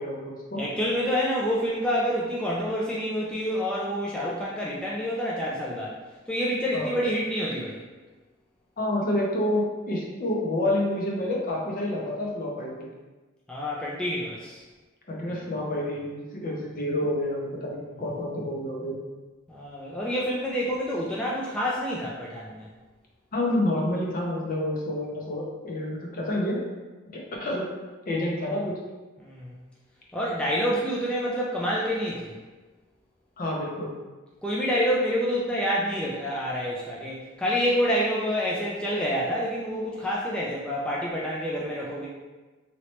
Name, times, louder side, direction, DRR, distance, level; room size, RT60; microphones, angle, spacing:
voice 1, 0.0-0.6 6.7-6.9 8.8-12.9 15.1-19.0 23.3-26.6 27.1-27.7 28.1-28.8 33.4-33.9, left 1 dB, 45° left, -2 dB, 0.7 m, -28 dB
voice 2, 0.6-6.0 6.3-7.8 13.5-14.6 19.5-22.7 29.2-29.6 30.1-32.4 34.4-42.1, equal, 5° left, -6 dB, 0.3 m, -28 dB
3.1 x 2.9 x 3.0 m, 1.3 s
head